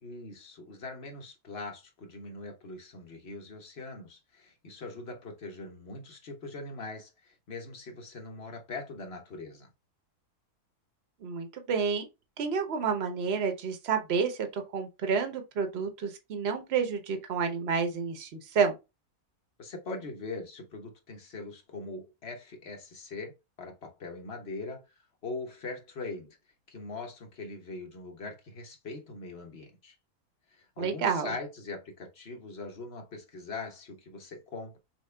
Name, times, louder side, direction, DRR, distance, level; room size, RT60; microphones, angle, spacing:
voice 1, 0.0-9.7 19.6-23.3 23.6-26.4 26.7-29.9 30.5-34.8, left 3 dB, 45° left, 1.3 m, -41 dB
voice 2, 11.2-12.0 12.4-18.7 30.8-31.3, right 6 dB, 45° right, 1.0 m, -29 dB
6.1 x 2.3 x 3.3 m
omnidirectional pair, 1.6 m